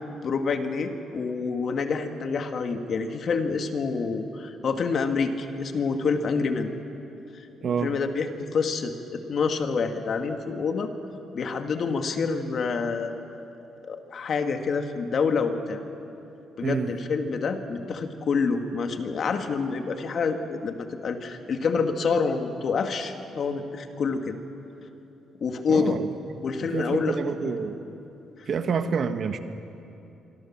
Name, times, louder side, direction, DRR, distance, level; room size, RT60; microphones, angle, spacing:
voice 1, 0.2-6.7 7.8-10.9 11.3-13.4 13.8-15.8 16.6-24.4 25.4-26.0 26.4-27.5, left 5 dB, 55° left, 5 dB, 2.1 m, -27 dB
voice 2, 7.6-7.9 16.6-16.9 25.7-26.1 26.6-27.8 28.5-29.4, right 6 dB, 55° right, 8 dB, 1.5 m, -28 dB
26.0 x 24.0 x 7.4 m, 2.9 s
cardioid pair, 90°, 0 cm